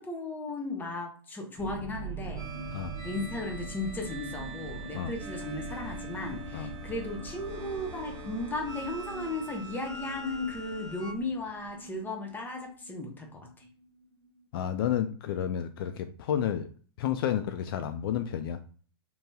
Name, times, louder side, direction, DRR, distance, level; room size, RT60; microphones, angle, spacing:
voice 1, 0.0-2.5 3.0-13.4, left 2 dB, 15° left, 2 dB, 0.8 m, -36 dB
sound 1, 1.6-14.4, right 2 dB, 50° right, 1.1 m, -43 dB
sound 2, 2.4-11.1, right 2 dB, 25° right, 0.9 m, -44 dB
voice 2, 14.5-16.7 17.0-18.6, left 10 dB, 65° left, 8 dB, 0.4 m, -31 dB
2.9 x 2.8 x 2.2 m, 0.40 s
hypercardioid pair, 120°, 13 cm